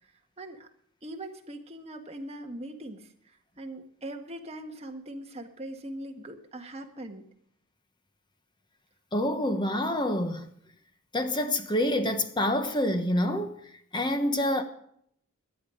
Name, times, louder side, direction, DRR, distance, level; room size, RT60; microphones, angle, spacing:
voice 1, 0.4-0.7 1.0-3.1 3.6-7.2, right 1 dB, 30° right, 1.6 m, -41 dB
voice 2, 9.1-10.5 11.1-13.5 13.9-14.6, left 1 dB, 20° left, 1.1 m, -27 dB
17.5 x 11.0 x 5.1 m
head